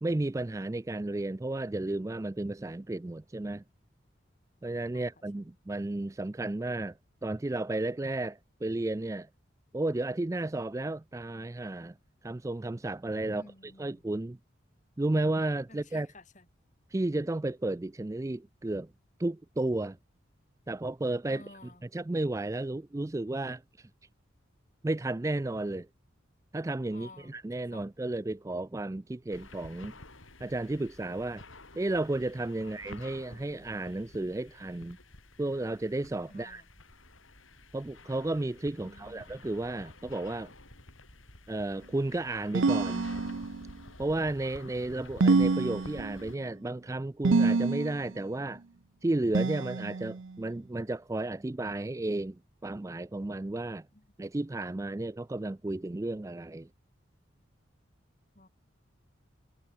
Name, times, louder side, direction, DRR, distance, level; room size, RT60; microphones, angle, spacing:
voice 1, 0.0-3.6 4.6-7.0 7.2-9.3 9.7-11.9 12.2-14.4 15.0-16.1 16.9-18.9 19.2-20.0 20.7-21.5 21.8-23.9 24.8-25.9 26.5-29.9 30.4-31.4 31.8-35.0 35.4-36.6 37.7-40.5 41.5-43.1 44.0-48.6 49.0-53.9 54.2-56.7, right 2 dB, 15° right, 0.3 m, -33 dB
voice 2, 13.2-14.0 15.7-16.4 21.3-21.8 26.9-27.4 27.7-27.9 32.6-32.7 36.3-36.7 38.8-39.3 53.7-54.0 58.4-58.5, left 2 dB, 40° left, 3.6 m, -53 dB
sound 1, 29.3-46.4, left 2 dB, 90° left, 7.2 m, -51 dB
sound 2, 42.5-43.7 45.2-46.3 47.2-48.1 49.3-50.3, right 3 dB, 80° right, 0.7 m, -27 dB
head